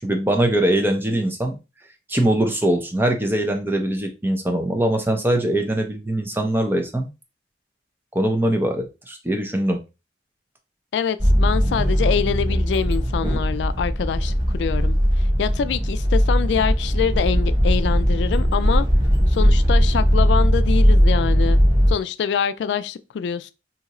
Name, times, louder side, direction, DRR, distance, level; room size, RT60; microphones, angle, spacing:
voice 1, 0.0-1.6 2.1-7.1 8.1-9.8, right 1 dB, 10° right, 0.6 m, -22 dB
voice 2, 10.9-15.0 15.4-18.9 19.3-21.6 21.9-23.5, left 7 dB, 80° left, 0.3 m, -25 dB
sound 1, 11.2-21.9, equal, 30° right, 1.1 m, -19 dB
2.8 x 2.5 x 4.0 m
head